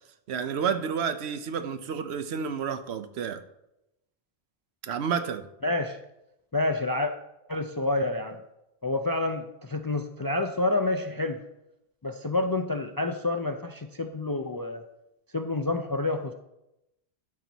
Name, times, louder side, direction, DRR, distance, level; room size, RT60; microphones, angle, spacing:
voice 1, 0.3-3.4 4.8-5.5, right 7 dB, 85° right, 1.0 m, -30 dB
voice 2, 5.6-6.0 6.5-7.1 7.5-8.4 8.8-11.4 12.0-14.8 15.3-16.3, left 2 dB, 35° left, 0.3 m, -28 dB
12.0 x 4.0 x 6.2 m
omnidirectional pair, 1.1 m